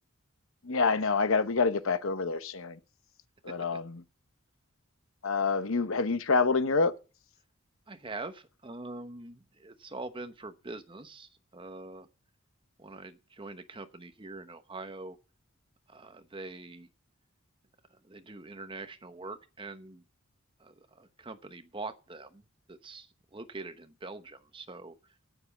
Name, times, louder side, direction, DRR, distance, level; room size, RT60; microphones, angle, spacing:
voice 1, 0.6-2.8 3.4-4.0 5.2-6.9, left 4 dB, 65° left, 0.9 m, -27 dB
voice 2, 3.5-3.8 7.9-12.1 12.8-15.2 15.9-16.9 18.0-20.0 20.6-22.4 22.7-25.0, right 3 dB, 25° right, 0.9 m, -44 dB
9.5 x 9.0 x 6.0 m
head